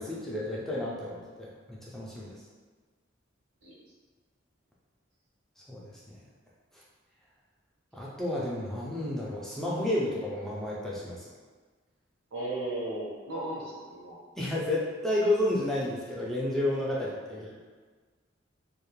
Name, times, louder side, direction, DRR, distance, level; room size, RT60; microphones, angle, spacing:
voice 1, 0.0-2.3 5.7-6.2 7.9-11.3 14.4-17.5, left 1 dB, ahead, -6 dB, 0.3 m, -31 dB
voice 2, 12.3-14.2 17.3-17.4, right 1 dB, 90° right, -5 dB, 0.8 m, -36 dB
2.3 x 2.0 x 3.0 m, 1.4 s
head